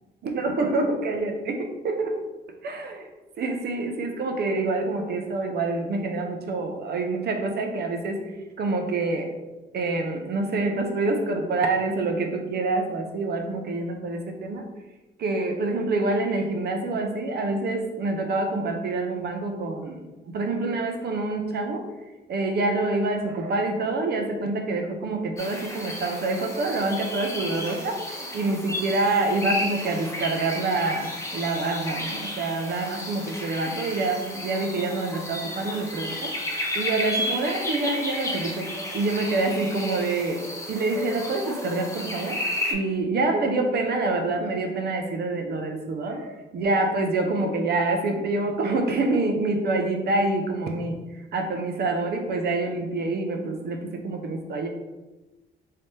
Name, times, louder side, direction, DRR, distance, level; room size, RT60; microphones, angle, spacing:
voice 1, 0.2-2.1 2.6-3.1 3.4-8.2 8.6-9.3 9.7-14.6 15.2-21.9 22.3-36.3 36.7-40.4 40.7-42.4 42.7-51.0 51.3-54.7, right 2 dB, 55° right, 4 dB, 0.6 m, -26 dB
sound 1, 25.4-42.7, left 1 dB, 15° left, 0.8 m, -33 dB
3.3 x 2.8 x 3.2 m, 1.1 s
cardioid pair, 90°, 20 cm